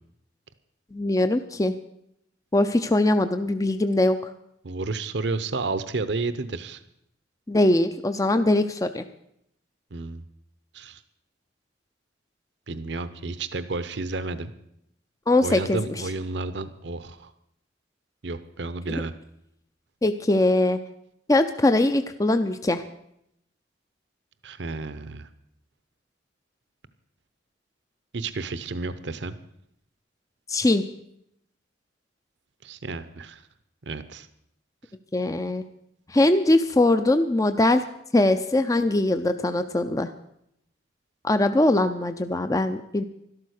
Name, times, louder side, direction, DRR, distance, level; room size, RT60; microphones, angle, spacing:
voice 1, 0.9-1.7 2.5-4.2 7.5-9.0 15.3-15.8 20.0-20.8 21.3-22.8 30.5-30.8 35.1-35.6 36.1-37.8 38.1-40.1 41.2-43.0, left 2 dB, 20° left, 9 dB, 0.5 m, -21 dB
voice 2, 4.6-6.8 9.9-10.2 10.7-11.0 12.7-14.5 15.4-17.3 18.2-19.1 24.4-25.3 28.1-29.4 32.6-33.4 33.9-34.3, right 3 dB, 65° right, 12 dB, 0.8 m, -31 dB
12.5 x 12.5 x 6.5 m, 0.75 s
head